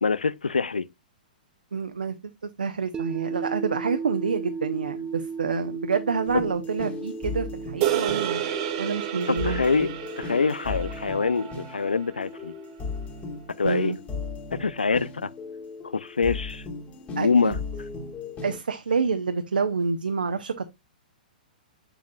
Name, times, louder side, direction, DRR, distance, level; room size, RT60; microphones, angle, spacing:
voice 1, 0.0-0.9 9.3-9.9 10.2-12.5 13.6-14.0 14.5-15.3 15.9-16.6 17.1-17.6, left 5 dB, 90° left, 0.5 m, -25 dB
voice 2, 1.7-2.2 2.4-8.5 8.8-9.6 13.6-14.0 17.2-17.6 18.4-20.7, right 5 dB, 80° right, 0.8 m, -28 dB
sound 1, 2.9-15.0, right 5 dB, 15° right, 0.4 m, -38 dB
sound 2, 6.3-18.6, left 4 dB, 25° left, 2.1 m, -37 dB
sound 3, 7.8-12.3, right 11 dB, 45° right, 1.5 m, -31 dB
7.2 x 7.0 x 2.3 m
hypercardioid pair, 120°, 5 cm